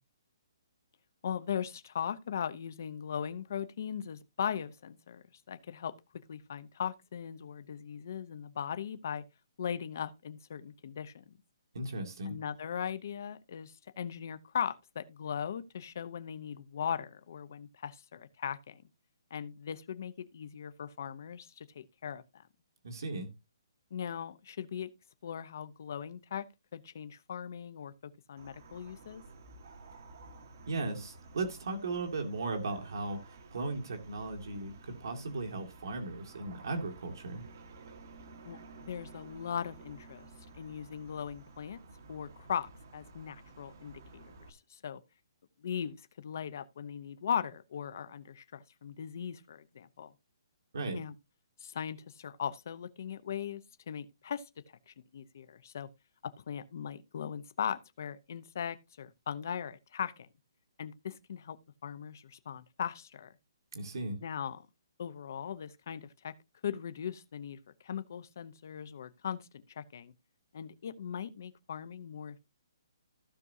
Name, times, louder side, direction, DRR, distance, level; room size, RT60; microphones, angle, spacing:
voice 1, 1.2-9.2 9.6-11.4 12.2-18.8 19.3-22.4 23.9-24.9 25.2-26.5 26.7-29.2 38.4-40.3 40.5-41.8 42.1-45.0 45.6-50.1 50.9-51.1 51.6-55.9 56.2-60.3 60.8-63.3 64.2-64.7 65.0-66.3 66.6-70.1 70.5-72.4, left 8 dB, 40° left, 0.7 m, -39 dB
voice 2, 11.7-12.4 22.8-23.3 30.7-37.4 50.7-51.0 63.7-64.2, right 3 dB, 60° right, 2.1 m, -37 dB
sound 1, 28.4-44.5, right 3 dB, 40° right, 1.3 m, -53 dB
15.0 x 6.1 x 2.7 m
hypercardioid pair, 180°, 2 cm